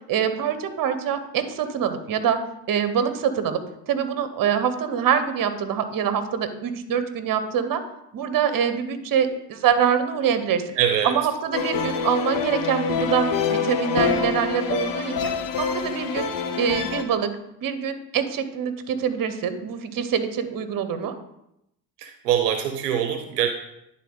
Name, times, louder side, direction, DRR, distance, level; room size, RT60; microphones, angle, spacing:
voice 1, 0.1-2.4 2.7-3.6 3.9-7.8 8.1-10.7 11.0-15.3 15.6-16.3 16.6-17.3 17.6-21.1, right 8 dB, 45° right, 10 dB, 1.1 m, -24 dB
voice 2, 10.8-11.2 22.0-23.5, right 9 dB, 85° right, 7 dB, 0.8 m, -23 dB
sound 1, 11.5-17.0, left 6 dB, 45° left, 1.0 m, -26 dB
10.0 x 4.0 x 3.8 m, 0.81 s
hypercardioid pair, 60°, 47 cm